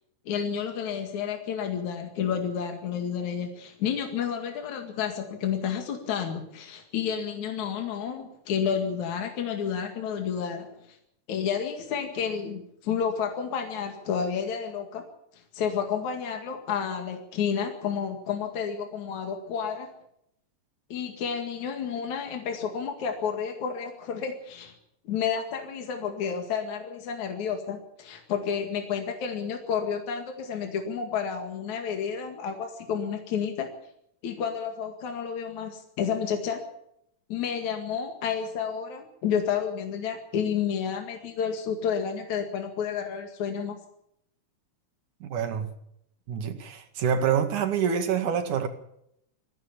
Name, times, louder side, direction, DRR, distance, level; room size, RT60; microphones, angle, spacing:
voice 1, 0.3-10.7 11.3-15.0 15.5-19.9 20.9-24.7 25.1-33.7 34.2-36.6 37.3-43.8, left 7 dB, 70° left, 3.5 m, -30 dB
voice 2, 45.2-45.7 46.3-48.7, right 7 dB, 80° right, 3.5 m, -26 dB
23.0 x 15.5 x 7.2 m
omnidirectional pair, 3.5 m